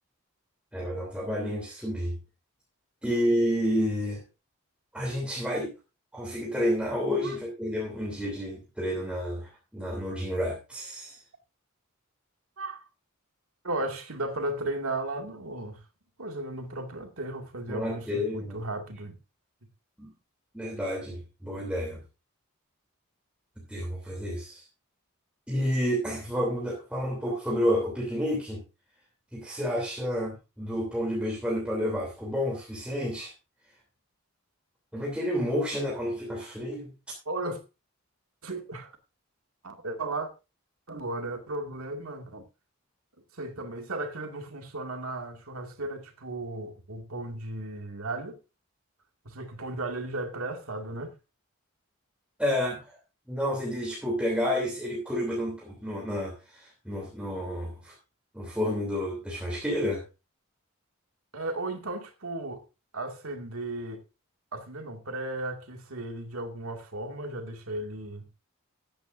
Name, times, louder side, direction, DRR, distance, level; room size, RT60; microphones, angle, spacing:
voice 1, 0.7-2.2 3.0-4.2 4.9-5.7 6.1-11.2 17.7-18.6 20.0-20.1 20.5-22.0 23.6-24.6 25.5-28.6 29.3-33.3 34.9-36.9 52.4-53.0 53.3-57.9 58.3-60.0, equal, 5° right, 3.1 m, -30 dB
voice 2, 12.6-12.9 13.6-15.8 16.2-19.2 37.3-37.6 38.4-39.0 39.6-40.3 40.9-42.4 43.3-48.4 49.2-51.1 61.3-62.6 62.9-64.0 64.5-68.3, right 2 dB, 75° right, 2.3 m, -35 dB
14.5 x 10.0 x 2.6 m
head